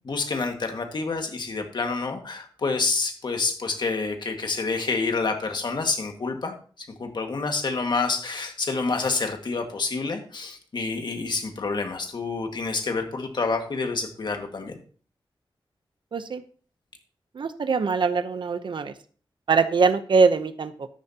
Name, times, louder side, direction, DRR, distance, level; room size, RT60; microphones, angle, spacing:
voice 1, 0.1-6.6 7.0-14.7, left 4 dB, 55° left, 4 dB, 1.8 m, -28 dB
voice 2, 16.1-16.4 17.3-18.9 19.5-20.9, right 5 dB, 60° right, 11 dB, 0.8 m, -22 dB
13.5 x 10.5 x 2.9 m, 0.42 s
wide cardioid pair, 150°, 9 cm